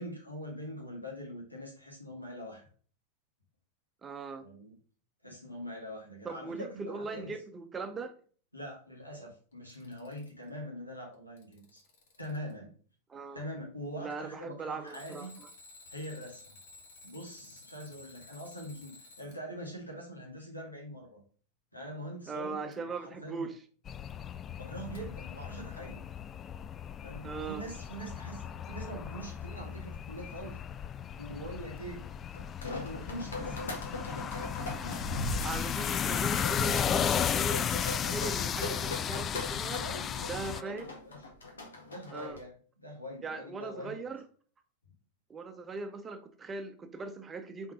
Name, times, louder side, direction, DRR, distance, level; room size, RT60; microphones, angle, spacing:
voice 1, 0.0-2.7 4.4-4.7 5.2-7.3 8.5-11.8 12.2-12.7 13.3-15.4 15.9-16.5 17.0-21.2 21.7-23.5 24.6-26.0 27.0-30.6 31.2-32.1 32.8-33.6 35.1-35.9 39.7-40.3 40.6-41.3 41.9-44.1, equal, 85° left, 2.4 m, -43 dB
voice 2, 4.0-4.4 6.2-8.1 13.1-13.4 14.0-15.5 22.3-23.5 27.2-27.7 35.4-39.8 40.3-40.9 42.1-42.4 43.2-44.2 45.3-47.7, right 4 dB, 20° right, 0.9 m, -39 dB
Alarm, 9.5-10.5 11.1-12.5 14.9-19.4 22.7-22.8 24.9-25.0, left 3 dB, 55° left, 1.6 m, -54 dB
sound 1, 23.9-40.6, left 8 dB, 25° left, 0.4 m, -35 dB
sound 2, 32.3-42.4, left 2 dB, 70° left, 1.8 m, -39 dB
5.7 x 4.5 x 5.0 m
figure-of-eight pair, 90°, 0 cm